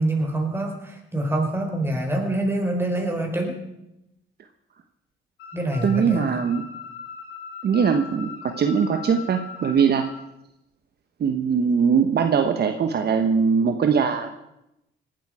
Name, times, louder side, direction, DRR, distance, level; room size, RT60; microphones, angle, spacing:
voice 1, 0.0-3.5 5.5-6.2, right 1 dB, 10° right, 2 dB, 4.5 m, -25 dB
sound 1, 5.4-10.2, left 6 dB, 85° left, 6.9 m, -40 dB
voice 2, 5.8-6.6 7.6-10.1 11.2-14.3, right 6 dB, 55° right, 6 dB, 1.2 m, -21 dB
18.5 x 12.0 x 4.9 m, 0.85 s
cardioid pair, 90°, 20 cm